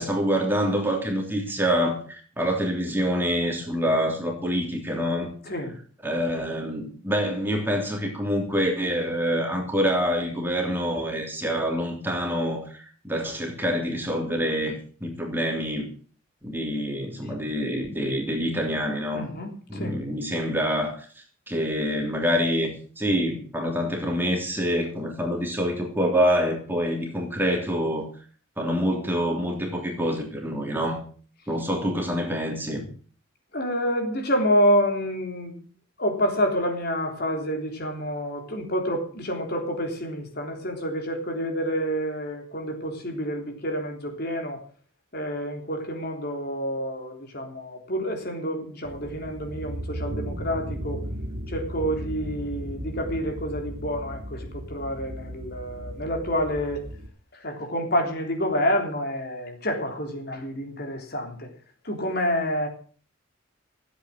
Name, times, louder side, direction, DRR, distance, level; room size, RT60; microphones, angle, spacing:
voice 1, 0.0-5.3 6.0-15.9 16.4-19.2 19.7-21.0 21.5-28.1 28.6-31.0 31.5-32.9, equal, 10° right, 1 dB, 3.1 m, -26 dB
voice 2, 19.1-19.9 33.5-35.5 36.0-44.6 45.1-51.0 51.5-56.8 57.3-61.5 61.8-62.7, equal, 50° left, 3 dB, 3.4 m, -28 dB
sound 1, 48.8-57.1, equal, 75° right, 2.2 m, -36 dB
15.0 x 8.5 x 7.5 m, 0.43 s
head